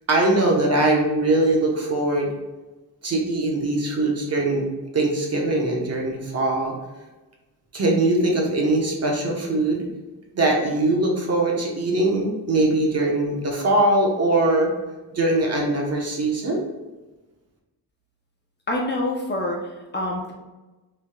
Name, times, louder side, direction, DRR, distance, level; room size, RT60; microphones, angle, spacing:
voice 1, 0.1-2.3 3.0-4.7 4.9-6.7 7.7-9.8 10.3-14.7 15.1-16.6, right 2 dB, 40° right, -1 dB, 1.0 m, -21 dB
voice 2, 18.7-20.3, left 1 dB, 25° left, -1 dB, 0.7 m, -26 dB
5.9 x 3.4 x 2.3 m, 1.1 s
wide cardioid pair, 135°, 39 cm